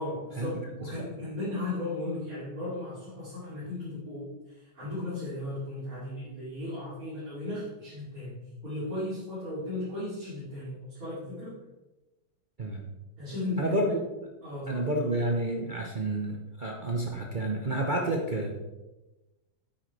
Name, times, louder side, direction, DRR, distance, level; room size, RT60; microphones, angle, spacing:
voice 1, 0.0-11.6 13.2-14.0 14.4-14.9, left 2 dB, 45° right, -10 dB, 3.2 m, -36 dB
voice 2, 13.6-14.0 14.7-18.5, right 1 dB, 60° right, -1 dB, 0.5 m, -29 dB
9.3 x 8.6 x 3.2 m, 1.1 s
omnidirectional pair, 2.2 m